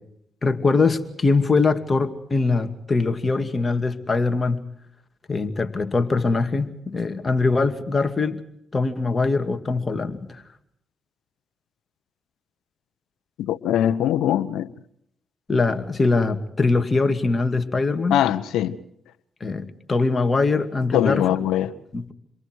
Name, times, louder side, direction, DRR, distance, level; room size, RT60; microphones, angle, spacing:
voice 1, 0.4-4.6 5.3-8.4 8.7-10.4 15.5-18.2 19.4-21.3 21.9-22.1, left 3 dB, 35° left, 2.6 m, -22 dB
voice 2, 13.4-14.7 18.1-18.8 20.9-21.7, left 11 dB, 85° left, 1.2 m, -22 dB
29.5 x 23.0 x 4.8 m
supercardioid pair, 60°, 0 cm